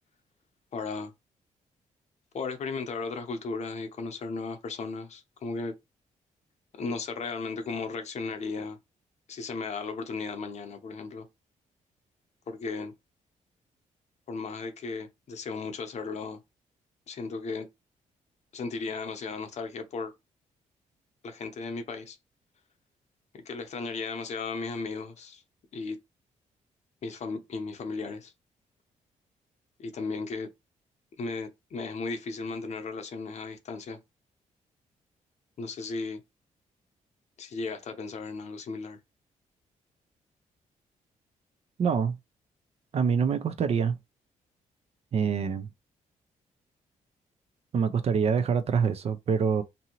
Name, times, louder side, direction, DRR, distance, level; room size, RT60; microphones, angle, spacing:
voice 1, 0.7-1.1 2.3-5.8 6.7-8.8 9.3-11.3 12.5-12.9 14.3-16.4 17.1-17.7 18.5-20.1 21.2-22.2 23.3-25.4 25.7-26.0 27.0-28.3 29.8-30.5 31.2-34.0 35.6-36.2 37.4-39.0, left 4 dB, 55° left, 0.7 m, -35 dB
voice 2, 41.8-42.2 42.9-44.0 45.1-45.7 47.7-49.6, right 6 dB, 50° right, 0.4 m, -25 dB
2.7 x 2.6 x 2.9 m
cardioid pair, 90°, 14 cm